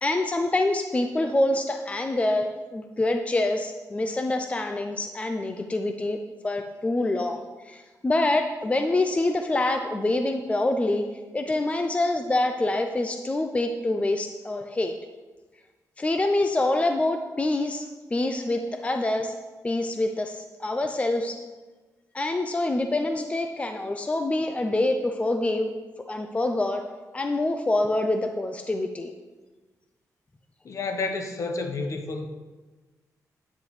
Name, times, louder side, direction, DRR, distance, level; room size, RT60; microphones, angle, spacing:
voice 1, 0.0-6.2 6.4-11.0 11.3-14.9 16.0-19.3 19.6-21.4 22.1-25.7 26.1-26.8 27.1-29.1, left 2 dB, 20° left, 5 dB, 0.5 m, -26 dB
voice 2, 30.6-32.2, left 3 dB, 50° left, 4 dB, 1.1 m, -30 dB
9.5 x 9.5 x 3.2 m, 1.3 s
wide cardioid pair, 120°, 7 cm